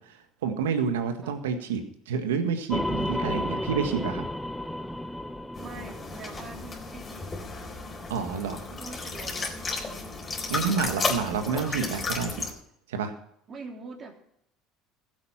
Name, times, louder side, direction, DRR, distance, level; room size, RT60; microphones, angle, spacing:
voice 1, 0.4-4.2 8.1-8.6 10.5-12.4 12.9-13.1, right 6 dB, 90° right, 7 dB, 1.7 m, -29 dB
sound 1, 2.7-7.1, left 1 dB, 5° left, 0.7 m, -32 dB
sound 2, 5.5-12.5, left 3 dB, 30° left, 4.1 m, -33 dB
voice 2, 5.6-7.6 8.7-10.2 13.5-14.1, right 3 dB, 40° right, 2 dB, 3.4 m, -44 dB
15.5 x 8.3 x 5.8 m, 0.72 s
hypercardioid pair, 80°, 0 cm